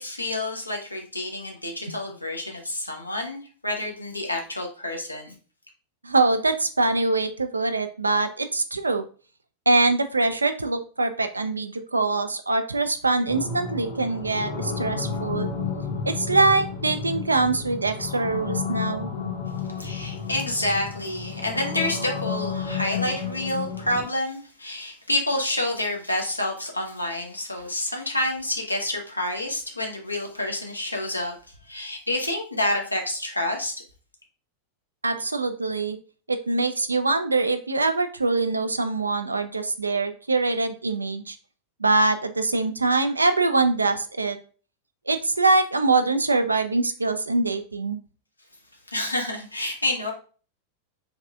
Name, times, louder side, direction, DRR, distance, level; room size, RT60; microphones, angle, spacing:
voice 1, 0.0-5.3 19.8-31.3 31.7-33.7 48.9-50.1, left 1 dB, 85° left, 1 dB, 0.8 m, -28 dB
voice 2, 6.0-9.0 9.7-15.5 16.0-19.1 35.0-36.0 36.3-41.4 41.8-44.4 45.1-48.0, right 3 dB, 80° right, 9 dB, 0.3 m, -23 dB
sound 1, 13.3-24.1, left 5 dB, 50° left, 1.1 m, -32 dB
3.5 x 3.1 x 2.4 m, 0.39 s
figure-of-eight pair, 90°, 0 cm